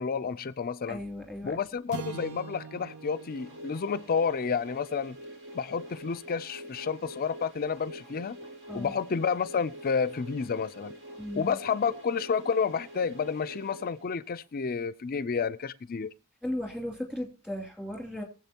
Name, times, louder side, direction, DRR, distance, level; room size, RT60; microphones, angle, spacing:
voice 1, 0.0-1.0 1.4-5.2 5.5-8.4 8.7-10.9 11.4-16.1, left 6 dB, 45° left, 0.4 m, -30 dB
voice 2, 0.9-1.6 8.7-8.9 11.2-11.5 16.4-18.2, left 1 dB, 5° right, 2.7 m, -36 dB
sound 1, 1.9-6.4, right 5 dB, 85° right, 0.8 m, -45 dB
sound 2, 2.7-14.6, equal, 60° right, 2.4 m, -46 dB
22.0 x 7.6 x 2.9 m
head